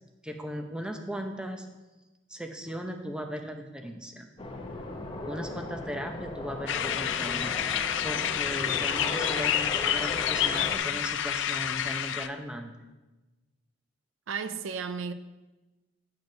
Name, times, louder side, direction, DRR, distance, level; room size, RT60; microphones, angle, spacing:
voice 1, 0.2-1.7 2.3-4.3 5.3-12.7, equal, 5° right, 0.7 m, -37 dB
sound 1, 4.4-10.8, left 2 dB, 25° left, 0.9 m, -37 dB
sound 2, 6.7-12.3, left 10 dB, 65° left, 0.4 m, -29 dB
voice 2, 14.3-15.1, right 6 dB, 80° right, 0.5 m, -33 dB
9.5 x 4.5 x 6.5 m
head